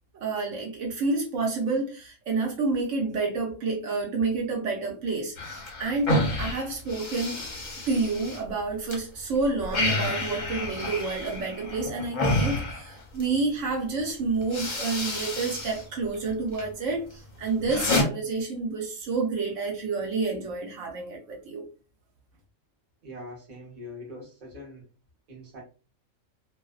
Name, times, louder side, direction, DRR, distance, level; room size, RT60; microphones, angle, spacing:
voice 1, 0.1-6.1 6.4-7.4 7.9-21.7, right 3 dB, 70° right, 1.0 m, -29 dB
sound 1, 5.4-9.0 9.3-13.4 14.0-14.1 14.4-15.8 16.1-16.7 17.1-18.0, left 1 dB, 50° left, 0.6 m, -29 dB
voice 2, 23.0-24.8 25.3-25.6, left 1 dB, 35° right, 0.8 m, -42 dB
2.5 x 2.1 x 2.3 m
omnidirectional pair, 1.4 m